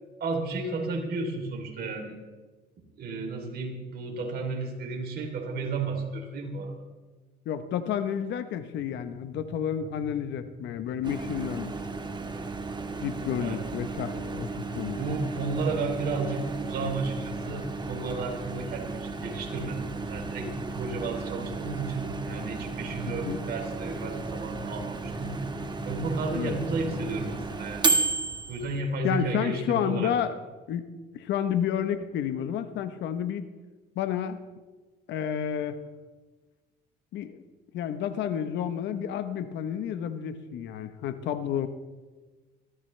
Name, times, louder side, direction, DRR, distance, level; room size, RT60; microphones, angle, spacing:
voice 1, 0.2-2.2 3.0-6.7 13.4-13.7 14.9-25.4 25.8-27.9 28.5-30.1, right 3 dB, 60° right, 1 dB, 3.4 m, -33 dB
voice 2, 7.5-11.7 13.0-15.0 23.1-23.4 26.3-26.5 29.0-30.4 30.7-30.9 31.1-33.4 34.0-34.4 35.1-35.8 37.1-37.4 37.7-41.7, left 9 dB, 75° left, 11 dB, 1.1 m, -30 dB
sound 1, 8.7-27.4, left 1 dB, 5° right, 6.2 m, -43 dB
Microwave oven, 11.0-28.8, right 4 dB, 25° right, 1.3 m, -34 dB
21.5 x 14.0 x 3.3 m, 1.3 s
cardioid pair, 90°, 19 cm